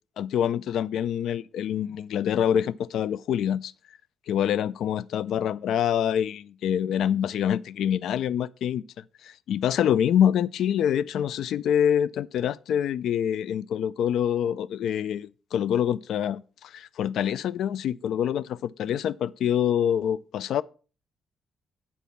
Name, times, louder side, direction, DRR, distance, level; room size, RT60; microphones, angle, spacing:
voice 1, 0.2-3.7 4.3-20.6, left 9 dB, 75° left, 0.3 m, -26 dB
9.2 x 4.2 x 6.9 m
cardioid pair, 125°, 0 cm